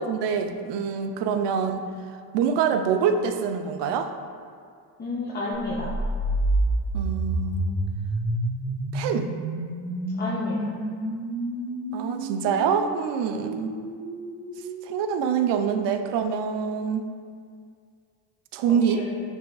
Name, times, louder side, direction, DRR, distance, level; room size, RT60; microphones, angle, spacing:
voice 1, 0.0-1.9 2.3-4.1 6.9-7.8 8.9-9.3 11.9-13.7 14.8-17.1 18.5-19.0, right 7 dB, 60° right, 7 dB, 0.5 m, -25 dB
voice 2, 5.0-6.0 10.2-10.7 18.7-19.2, left 2 dB, 20° left, -5 dB, 0.6 m, -31 dB
sound 1, 5.6-15.6, right 1 dB, 45° right, 1.2 m, -29 dB
5.8 x 3.4 x 2.3 m, 2.2 s
supercardioid pair, 80°, 49 cm